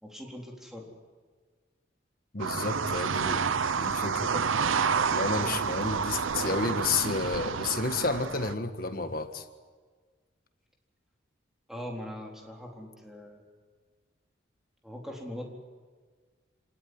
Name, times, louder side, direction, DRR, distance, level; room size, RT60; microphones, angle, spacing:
voice 1, 0.0-0.9 5.3-5.6 11.7-13.4 14.8-15.4, equal, ahead, -1 dB, 3.9 m, -41 dB
voice 2, 2.3-4.4 5.1-9.4, left 3 dB, 45° left, 8 dB, 1.6 m, -31 dB
sound 1, 2.4-8.5, right 6 dB, 90° right, 0.7 m, -29 dB
27.5 x 19.0 x 9.7 m, 1.5 s
head